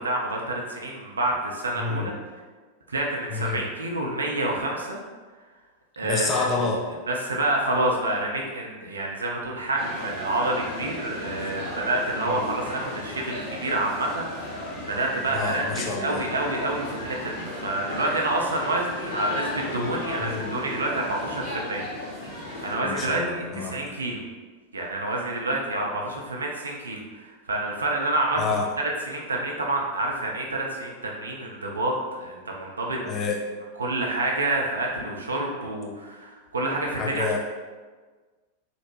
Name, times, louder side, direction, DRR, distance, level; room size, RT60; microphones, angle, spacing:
voice 1, 0.0-2.1 2.9-5.0 6.0-6.5 7.1-21.8 22.6-24.2 24.7-28.4 29.1-33.0 33.8-37.4, right 2 dB, 75° right, -1 dB, 0.4 m, -28 dB
voice 2, 1.8-2.1 3.3-3.6 6.0-6.8 12.3-12.4 15.3-16.2 20.2-20.5 22.8-23.8 28.4-28.7 33.0-33.4 36.9-37.4, left 4 dB, 25° left, -1 dB, 0.5 m, -28 dB
sound 1, 9.8-22.8, left 1 dB, 55° left, 1.1 m, -35 dB
2.9 x 2.0 x 2.9 m, 1.4 s
figure-of-eight pair, 90°, 0 cm